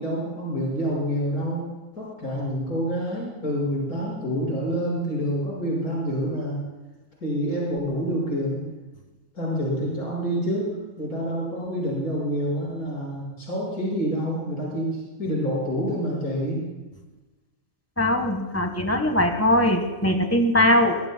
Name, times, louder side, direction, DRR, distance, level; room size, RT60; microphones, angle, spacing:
voice 1, 0.0-1.7 2.0-6.6 7.2-8.6 9.3-16.7, equal, 80° left, -5 dB, 6.4 m, -27 dB
voice 2, 18.0-21.0, left 1 dB, 10° left, 4 dB, 1.5 m, -21 dB
22.0 x 21.5 x 2.3 m, 1.2 s
omnidirectional pair, 1.5 m